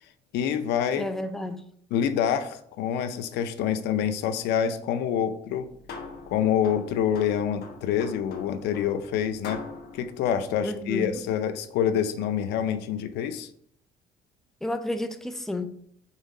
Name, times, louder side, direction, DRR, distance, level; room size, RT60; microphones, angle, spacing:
voice 1, 0.3-1.1 1.9-5.7 6.3-9.6 9.9-13.5, left 9 dB, 85° left, 11 dB, 0.6 m, -26 dB
voice 2, 1.0-1.6 10.6-11.2 14.6-15.7, left 1 dB, ahead, 8 dB, 0.6 m, -31 dB
sound 1, 5.4-11.3, left 4 dB, 65° left, 1.2 m, -44 dB
5.7 x 3.5 x 5.4 m, 0.65 s
cardioid pair, 110°, 17 cm